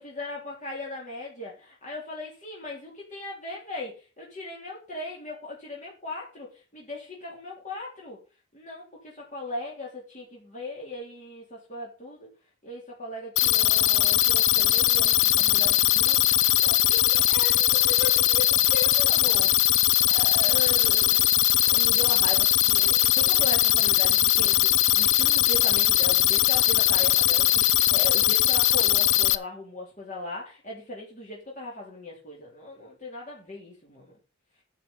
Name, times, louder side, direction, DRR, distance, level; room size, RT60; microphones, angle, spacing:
voice 1, 0.0-8.2 8.5-12.3 12.6-21.4 21.6-34.1, left 2 dB, 40° left, -3 dB, 3.4 m, -38 dB
sound 1, 13.4-29.4, left 13 dB, 75° left, 0.5 m, -21 dB
9.4 x 5.7 x 7.1 m, 0.33 s
head